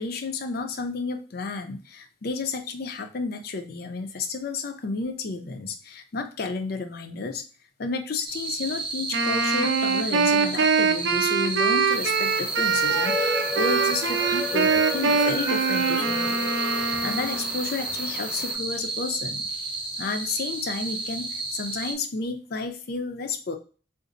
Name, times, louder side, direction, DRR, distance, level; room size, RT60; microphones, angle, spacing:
voice 1, 0.0-7.4 7.8-16.4 16.9-19.5 20.0-23.6, left 4 dB, 55° left, 7 dB, 0.5 m, -32 dB
sound 1, 8.3-21.9, right 2 dB, 30° right, 0.6 m, -32 dB
Wind instrument woodwind instrument, 9.1-17.5, right 5 dB, 80° right, 0.5 m, -24 dB
sound 2, 11.9-18.5, equal, 10° right, 0.9 m, -33 dB
3.9 x 2.5 x 2.5 m, 0.37 s
head